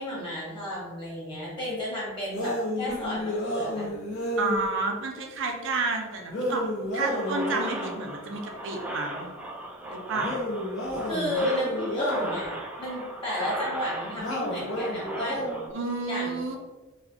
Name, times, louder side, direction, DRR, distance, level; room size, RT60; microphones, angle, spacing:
voice 1, 0.0-3.9 7.0-7.5 11.1-15.6 16.0-16.4, left 1 dB, 25° left, -7 dB, 1.5 m, -33 dB
sound 1, 2.3-4.7 6.3-8.0 10.2-12.4 14.2-15.7, equal, 55° left, 1.3 m, -31 dB
voice 2, 4.4-9.3 9.9-10.4 15.7-16.6, right 3 dB, 65° right, 2 dB, 0.6 m, -30 dB
sound 2, 7.0-15.7, right 1 dB, 10° right, 0.4 m, -37 dB
4.0 x 2.3 x 2.8 m, 1.2 s
head